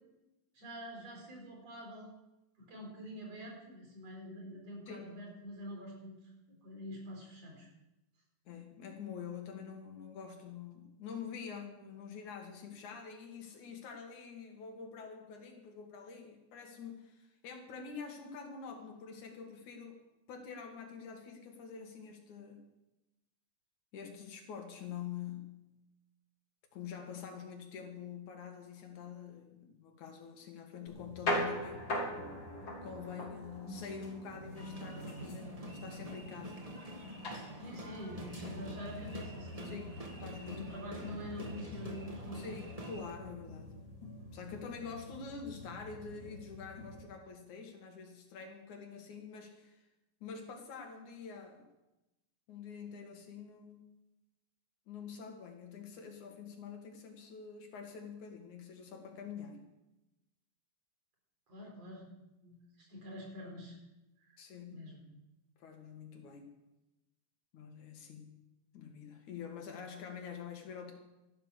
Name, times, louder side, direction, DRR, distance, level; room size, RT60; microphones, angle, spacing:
voice 1, 0.5-2.1 2.6-6.3 6.6-7.7 37.6-39.8 40.4-42.6 61.5-62.1 62.4-63.8 64.2-64.4 64.7-65.0, equal, 60° right, -1 dB, 5.5 m, -46 dB
voice 2, 8.5-20.0 20.3-22.6 23.9-25.6 26.7-31.9 32.8-36.6 37.2-37.5 39.6-40.9 42.3-43.8 44.3-49.9 50.2-51.7 52.5-53.9 54.9-59.6 64.4-64.9 65.6-66.5 67.5-68.3 68.7-70.9, left 6 dB, 90° left, 3 dB, 3.5 m, -46 dB
sound 1, 30.9-47.0, left 1 dB, 40° left, 3.9 m, -43 dB
sound 2, 34.5-43.2, right 1 dB, 20° right, 1.1 m, -48 dB
13.5 x 12.5 x 6.3 m, 0.96 s
omnidirectional pair, 3.3 m